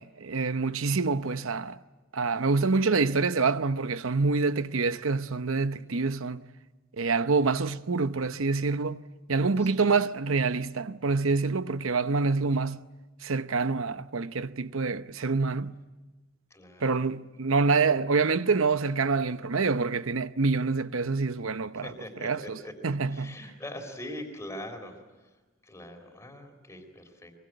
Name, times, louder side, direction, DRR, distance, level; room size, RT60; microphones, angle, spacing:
voice 1, 0.0-1.8 2.1-6.5 7.0-9.0 9.3-12.8 13.2-15.7 16.8-21.9 22.2-22.6 22.8-23.4, right 4 dB, 70° right, 0.8 m, -26 dB
voice 2, 16.5-16.8 21.8-22.7 23.1-25.3 25.6-27.3, left 1 dB, 15° left, 3.9 m, -42 dB
23.5 x 23.5 x 9.2 m
head